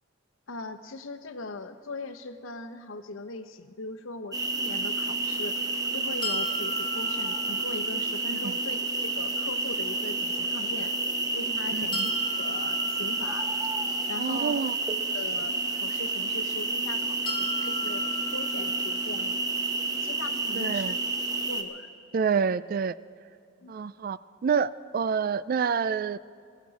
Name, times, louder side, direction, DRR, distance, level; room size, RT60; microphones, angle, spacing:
voice 1, 0.5-11.0 11.3-12.1 12.4-13.7 14.1-14.6 15.1-18.0 18.3-19.3 20.0-20.9 21.5-21.9 23.6-23.7, left 3 dB, 80° left, 8 dB, 0.9 m, -40 dB
sound 1, 4.3-21.6, right 3 dB, 20° right, 0.9 m, -30 dB
sound 2, 6.2-8.2 11.9-14.0 17.3-19.3, left 1 dB, 25° left, 1.4 m, -37 dB
voice 2, 11.7-12.1 14.2-14.7 20.6-21.0 22.1-22.9 23.7-26.2, right 6 dB, 45° right, 16 dB, 0.3 m, -27 dB
21.0 x 15.0 x 4.1 m, 2.3 s
head